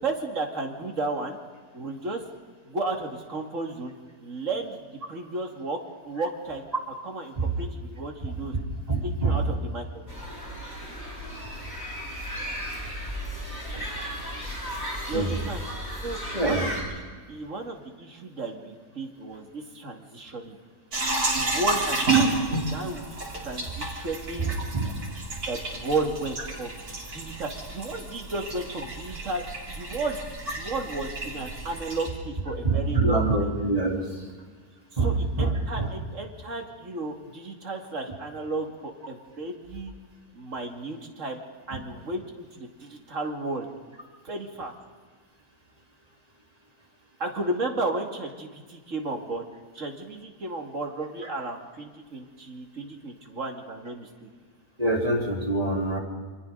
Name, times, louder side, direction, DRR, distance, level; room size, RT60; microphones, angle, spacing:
voice 1, 0.0-1.4 1.7-2.2 2.6-3.9 4.2-4.8 5.1-6.6 7.0-8.5 9.0-9.8 15.1-15.6 16.0-20.6 21.3-23.1 23.4-24.5 25.5-26.8 27.1-29.4 29.7-30.2 30.5-33.5 34.9-39.9 40.3-41.4 41.7-43.7 44.2-44.7 47.2-49.5 49.7-54.3, right 2 dB, 50° right, 2 dB, 2.6 m, -33 dB
voice 2, 8.9-9.4 15.1-15.3 16.3-16.7 24.4-24.9 32.6-34.0 35.0-35.1 35.4-35.9 54.8-56.0, right 2 dB, 25° right, -2 dB, 3.9 m, -25 dB
sound 1, 10.1-16.8, equal, 15° left, 5.5 m, -35 dB
sound 2, 20.9-32.1, right 3 dB, 70° right, 4.3 m, -30 dB
28.5 x 25.0 x 4.0 m, 1.5 s
omnidirectional pair, 1.7 m